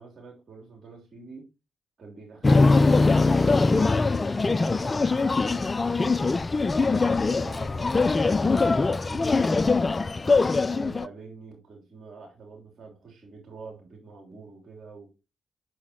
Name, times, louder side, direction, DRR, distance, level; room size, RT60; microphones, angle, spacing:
voice 1, 0.0-1.5 2.0-6.2 6.6-10.1 10.7-15.1, right 4 dB, 55° right, 3.1 m, -46 dB
sound 1, 2.4-11.1, left 3 dB, 35° left, 0.4 m, -22 dB
8.4 x 6.2 x 2.9 m
hypercardioid pair, 40°, 0 cm